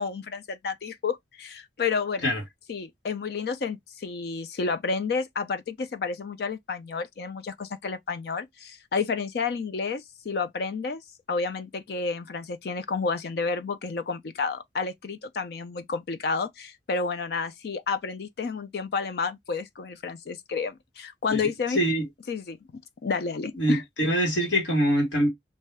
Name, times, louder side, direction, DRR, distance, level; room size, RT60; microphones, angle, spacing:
voice 1, 0.0-2.3 2.7-11.0 11.3-21.9 22.3-22.6 23.0-23.8, left 4 dB, 60° left, 0.4 m, -30 dB
voice 2, 21.7-22.0 23.5-25.3, equal, 85° left, 1.3 m, -24 dB
2.6 x 2.2 x 3.1 m
head